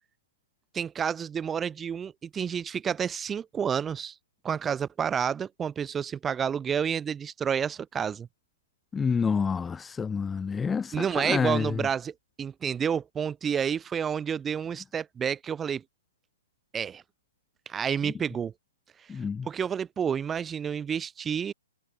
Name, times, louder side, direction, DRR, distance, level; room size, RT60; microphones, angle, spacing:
voice 1, 0.7-4.1 4.4-8.3 10.9-15.8 16.7-17.0 17.7-18.5 19.4-21.5, right 7 dB, 15° right, 6.6 m, -30 dB
voice 2, 8.9-11.9 18.0-18.1 19.1-19.5, left 5 dB, 10° left, 4.6 m, -28 dB
hypercardioid pair, 140°, 0 cm